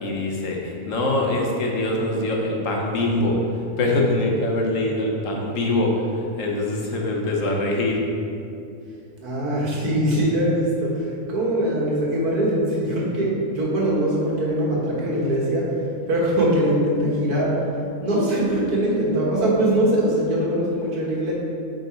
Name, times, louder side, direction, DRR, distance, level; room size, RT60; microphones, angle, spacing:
voice 1, 0.0-3.4 3.8-6.0 6.4-8.0, left 2 dB, 60° left, -1 dB, 1.2 m, -23 dB
voice 2, 9.2-15.7 16.1-17.6 18.0-21.3, right 1 dB, 90° right, -5 dB, 1.9 m, -22 dB
7.8 x 3.9 x 4.4 m, 2.6 s
omnidirectional pair, 1.6 m